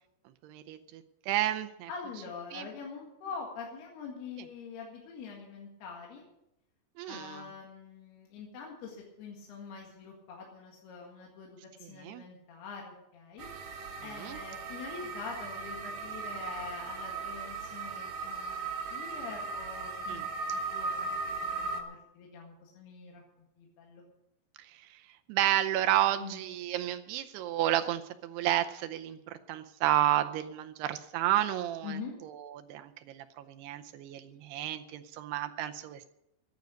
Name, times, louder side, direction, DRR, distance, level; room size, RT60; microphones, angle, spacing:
voice 1, 0.4-1.9 2.5-2.7 7.0-7.5 11.8-12.2 14.1-14.4 20.1-20.3 24.8-24.9 25.3-36.1, right 13 dB, 80° right, 8 dB, 2.6 m, -31 dB
voice 2, 1.9-6.3 7.1-18.7 18.9-23.2 23.6-24.0 26.2-26.4 31.8-32.1, left 5 dB, 70° left, -1 dB, 3.8 m, -45 dB
sound 1, 13.4-21.8, right 3 dB, 55° right, 2.8 m, -37 dB
14.5 x 10.5 x 6.5 m, 0.83 s
omnidirectional pair, 5.0 m